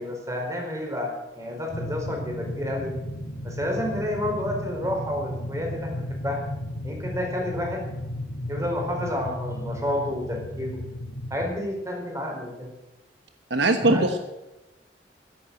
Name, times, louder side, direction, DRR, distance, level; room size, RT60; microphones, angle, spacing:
voice 1, 0.0-3.0 3.4-6.4 6.8-8.0 8.5-10.8 11.3-12.7 13.8-14.0, left 1 dB, 20° right, 1 dB, 4.5 m, -30 dB
sound 1, 1.7-11.6, left 1 dB, 85° left, 2.5 m, -34 dB
voice 2, 13.5-14.2, right 2 dB, 75° right, 7 dB, 1.3 m, -21 dB
13.5 x 11.0 x 7.9 m, 0.99 s
head